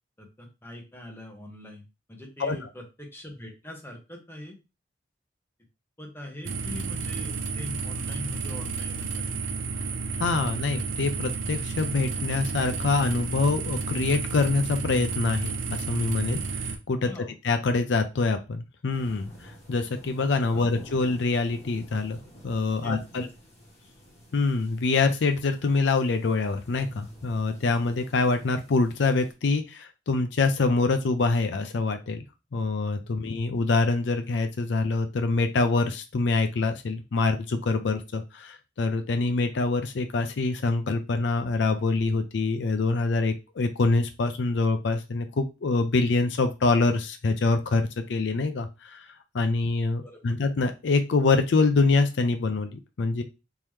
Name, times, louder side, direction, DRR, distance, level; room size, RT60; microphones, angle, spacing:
voice 1, 0.2-1.8 2.1-4.5 6.0-9.4 17.0-17.3 20.5-20.7 22.8-23.3 50.0-50.2, left 1 dB, 10° left, 1 dB, 0.9 m, -42 dB
sound 1, 6.4-16.8, right 4 dB, 85° right, 0.6 m, -31 dB
voice 2, 10.2-17.1 17.4-22.2 22.4-23.3 24.3-32.2 32.5-49.0 49.3-53.2, left 3 dB, 65° left, 7 dB, 0.5 m, -25 dB
sound 2, 18.9-29.3, equal, 35° left, 1.5 m, -50 dB
3.7 x 2.8 x 3.1 m, 0.27 s
head